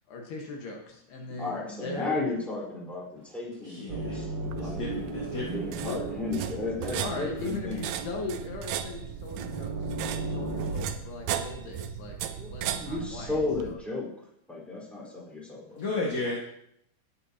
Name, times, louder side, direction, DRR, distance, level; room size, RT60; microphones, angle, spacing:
voice 1, 0.1-2.3 5.7-6.1 7.0-9.7 10.1-12.2 12.5-13.8, left 3 dB, 75° left, 1 dB, 3.4 m, -38 dB
voice 2, 1.4-4.9 5.5-7.8 12.4-14.1 14.5-15.8, left 3 dB, ahead, -5 dB, 3.8 m, -34 dB
voice 3, 3.6-4.2 4.6-5.8 15.8-16.5, left 2 dB, 50° left, -4 dB, 2.5 m, -34 dB
sound 1, 3.9-10.7, right 3 dB, 60° right, 2.0 m, -37 dB
sound 2, 4.4-13.7, right 9 dB, 80° right, 2.1 m, -36 dB
18.0 x 9.4 x 2.9 m, 0.73 s
omnidirectional pair, 4.8 m